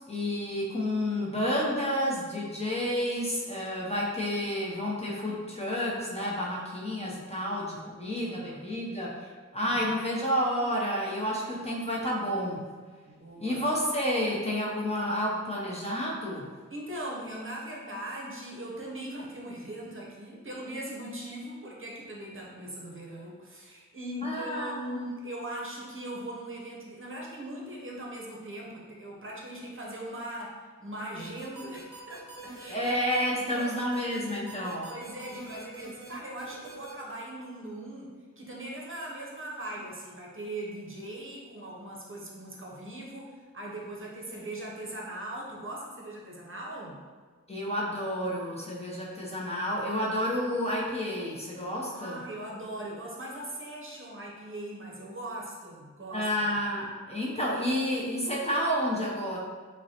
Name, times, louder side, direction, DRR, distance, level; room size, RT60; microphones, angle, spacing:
voice 1, 0.1-12.6 13.4-16.5 24.2-25.0 32.7-34.9 47.5-52.2 56.1-59.4, equal, 20° left, -5 dB, 0.7 m, -30 dB
voice 2, 7.4-8.6 9.6-9.9 13.1-13.7 16.7-32.8 33.4-33.8 34.5-47.0 51.9-56.5, right 1 dB, 45° right, -3 dB, 0.7 m, -40 dB
sound 1, 31.2-36.9, right 3 dB, 15° right, 0.8 m, -44 dB
5.1 x 2.1 x 2.9 m, 1.5 s
wide cardioid pair, 75°, 29 cm